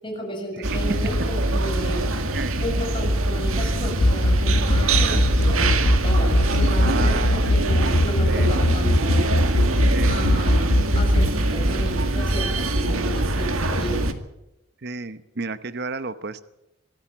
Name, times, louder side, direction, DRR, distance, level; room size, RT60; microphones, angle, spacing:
voice 1, 0.0-2.1 2.6-9.3 10.1-14.1, equal, 25° left, 1 dB, 6.9 m, -33 dB
sound 1, 0.6-14.1, right 2 dB, 90° right, 2.0 m, -23 dB
sound 2, 4.0-11.3, left 1 dB, 75° left, 1.1 m, -19 dB
voice 2, 6.7-7.9 8.3-8.5 9.9-10.2 12.5-12.6 14.8-16.4, right 4 dB, 50° right, 13 dB, 0.9 m, -32 dB
24.0 x 14.0 x 8.7 m, 0.89 s
head